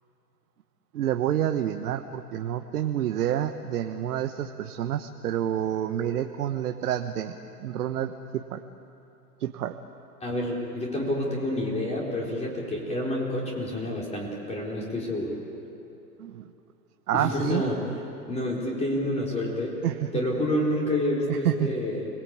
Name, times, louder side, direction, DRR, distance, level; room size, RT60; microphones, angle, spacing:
voice 1, 0.9-8.6 9.4-9.7 16.2-16.5 17.1-17.6 19.8-20.1 21.3-21.7, right 11 dB, 60° right, 6 dB, 1.3 m, -28 dB
voice 2, 10.2-15.4 17.1-17.8 18.3-19.8 20.1-22.1, left 1 dB, 15° left, -2 dB, 4.2 m, -28 dB
29.5 x 20.0 x 8.8 m, 2.8 s
hypercardioid pair, 125°, 49 cm